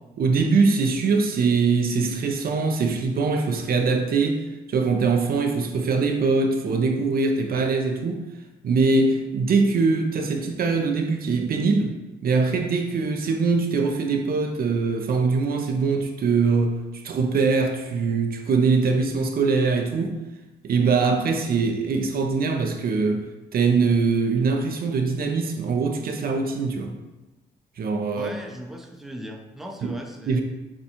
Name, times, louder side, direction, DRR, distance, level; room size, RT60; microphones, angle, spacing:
voice 1, 0.2-8.2 8.6-12.0 12.2-16.8 17.0-20.2 20.6-26.9 27.8-28.3 29.8-30.0 30.3-30.4, right 4 dB, 55° right, 4 dB, 0.5 m, -22 dB
voice 2, 28.1-30.4, equal, ahead, 2 dB, 0.6 m, -38 dB
6.7 x 2.3 x 2.9 m, 1.1 s
cardioid pair, 80°, 19 cm